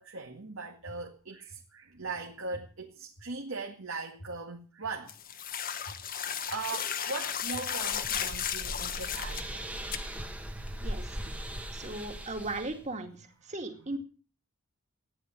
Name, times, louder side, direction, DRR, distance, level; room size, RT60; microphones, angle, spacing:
voice 1, 0.0-5.2 6.5-9.7 13.8-13.9, right 3 dB, 65° right, 2.0 m, -39 dB
sound 1, 0.8-0.9 1.5-1.6 2.5-2.6 3.2-3.3 4.2-4.3 4.8-4.9 5.8-5.9 6.5-6.6 7.5-7.6 8.2-8.3, equal, 60° left, 2.6 m, -47 dB
sound 2, 5.1-9.5 9.9-10.0, left 8 dB, 40° left, 1.2 m, -34 dB
sound 3, 7.5-12.8, equal, 5° right, 1.3 m, -39 dB
voice 2, 11.7-13.1 13.5-14.0, right 2 dB, 30° right, 2.5 m, -37 dB
15.0 x 10.0 x 7.7 m
head